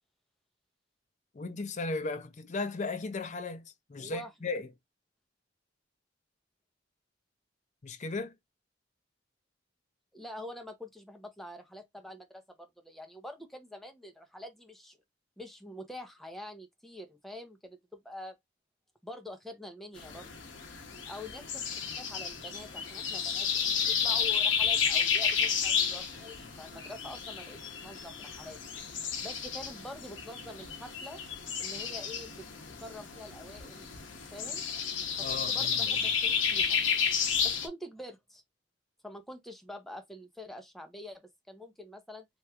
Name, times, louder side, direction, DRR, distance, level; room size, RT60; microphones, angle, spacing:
voice 1, 1.3-4.7 7.8-8.3 35.2-36.0, left 3 dB, 40° left, 0.5 m, -36 dB
voice 2, 4.0-4.3 10.1-15.0 15.4-18.3 19.0-20.3 21.1-28.6 29.2-31.2 31.6-32.5 32.8-33.9 34.3-34.6 35.2-36.8 37.4-38.4 39.0-42.3, left 1 dB, ahead, 0.7 m, -46 dB
sound 1, 20.0-37.7, left 7 dB, 85° left, 0.8 m, -32 dB
3.1 x 2.9 x 2.3 m
head